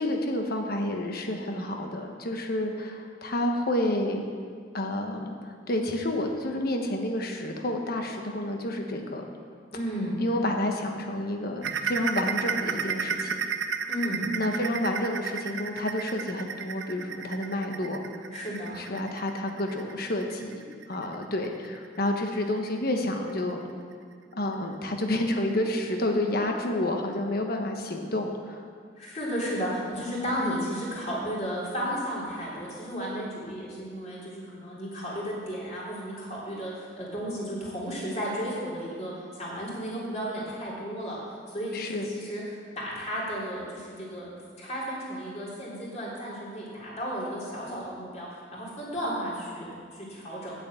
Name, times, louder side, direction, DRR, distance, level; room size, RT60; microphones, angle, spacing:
voice 1, 0.0-4.2 4.7-5.3 5.7-9.2 10.2-13.4 14.3-18.0 18.8-23.6 24.3-28.6 30.4-30.6 41.7-42.1, left 1 dB, 55° left, 3 dB, 1.3 m, -29 dB
voice 2, 9.7-10.2 13.9-14.3 18.3-18.8 29.0-41.2 41.5-44.3 44.6-50.5, equal, 40° left, -6 dB, 3.7 m, -33 dB
sound 1, 11.6-22.9 23.3-23.5 23.9-24.0 24.5-24.6, right 6 dB, 85° right, 0.6 m, -33 dB
8.2 x 8.1 x 8.6 m, 2.1 s
head